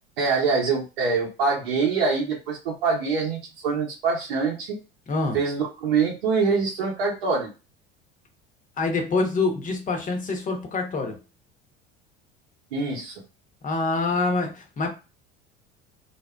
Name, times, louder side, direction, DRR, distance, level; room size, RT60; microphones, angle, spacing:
voice 1, 0.2-4.8 5.3-7.5 12.7-13.1, right 4 dB, 90° right, 0.8 m, -24 dB
voice 2, 5.1-5.4 8.8-11.2 13.6-14.9, left 3 dB, 25° left, 0.9 m, -25 dB
2.6 x 2.1 x 2.2 m
hypercardioid pair, 85°, 29 cm